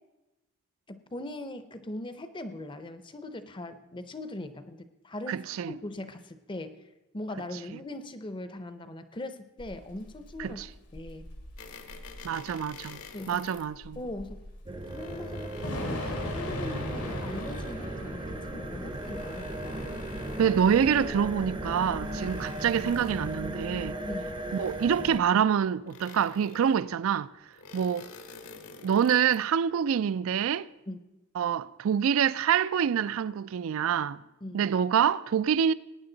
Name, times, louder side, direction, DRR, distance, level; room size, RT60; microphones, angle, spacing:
voice 1, 0.9-6.8 7.1-10.6 10.9-11.3 13.1-13.4 14.0-14.4 14.9-19.9 24.0-24.4 30.9-31.0 34.4-34.6, left 1 dB, 20° left, 0.6 m, -40 dB
voice 2, 5.3-5.7 10.4-10.7 12.2-13.0 13.3-14.0 20.4-24.0 24.5-27.3 27.7-28.1 28.8-30.7 31.4-34.2 34.5-35.7, right 8 dB, 65° right, 0.3 m, -26 dB
Thunder / Rain, 9.6-23.1, left 1 dB, 90° left, 2.3 m, -41 dB
sound 1, 11.6-13.7 14.6-17.9 18.7-21.1 21.8-23.5 24.4-25.3 25.9-26.9 27.5-29.5, left 4 dB, 70° left, 1.1 m, -48 dB
sound 2, 14.7-25.2, right 1 dB, 20° right, 0.6 m, -37 dB
18.0 x 9.5 x 3.9 m
head